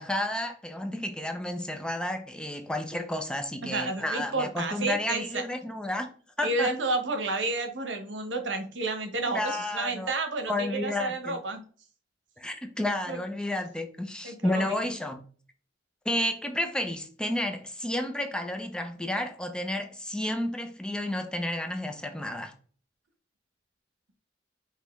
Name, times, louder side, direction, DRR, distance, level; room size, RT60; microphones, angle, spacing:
voice 1, 0.0-6.1 6.4-6.7 9.3-10.1 10.5-11.4 12.4-15.2 16.0-22.5, left 1 dB, 5° left, 0.5 m, -31 dB
voice 2, 3.6-5.4 6.4-11.6 13.1-13.2 14.2-14.7, right 3 dB, 80° right, 1.0 m, -31 dB
5.6 x 3.0 x 3.1 m
head